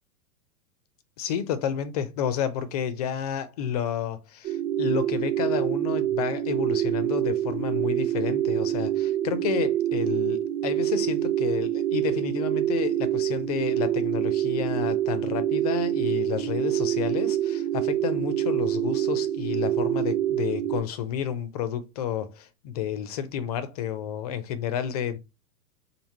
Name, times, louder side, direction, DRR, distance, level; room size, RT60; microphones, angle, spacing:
voice 1, 1.2-25.2, left 9 dB, 30° left, 0.4 m, -31 dB
sound 1, 4.4-20.8, right 12 dB, 30° right, 0.8 m, -26 dB
3.4 x 2.1 x 4.1 m
figure-of-eight pair, 110°, 46 cm